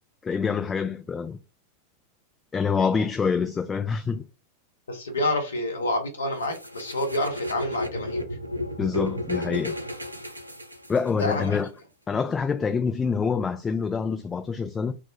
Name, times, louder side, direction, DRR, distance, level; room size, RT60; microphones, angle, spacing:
voice 1, 0.2-1.4 2.5-4.2 8.8-9.7 10.9-11.7 12.1-14.9, left 5 dB, 15° left, 0.3 m, -26 dB
voice 2, 4.9-8.3 11.2-11.6, left 1 dB, 70° left, 0.9 m, -28 dB
sound 1, 6.4-11.3, left 1 dB, 85° right, 0.4 m, -33 dB
3.6 x 2.0 x 3.2 m
figure-of-eight pair, 90°, 0 cm